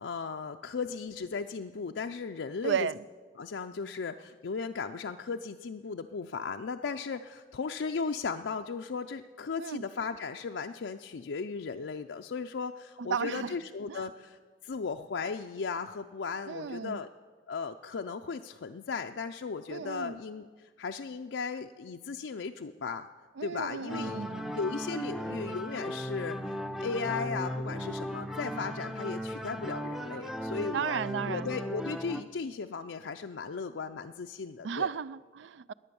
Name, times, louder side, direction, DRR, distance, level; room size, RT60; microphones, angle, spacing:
voice 1, 0.0-2.9 3.4-17.1 17.5-23.1 23.4-24.2 24.5-31.0 31.3-34.9, left 5 dB, 85° left, 0.5 m, -36 dB
voice 2, 2.6-2.9 9.6-9.8 13.0-13.5 13.9-14.0 16.5-17.0 19.7-20.2 23.4-24.5 30.7-31.5 34.6-35.7, right 7 dB, 85° right, 0.4 m, -34 dB
sound 1, 23.9-32.2, equal, ahead, 0.6 m, -37 dB
20.5 x 8.7 x 7.0 m
head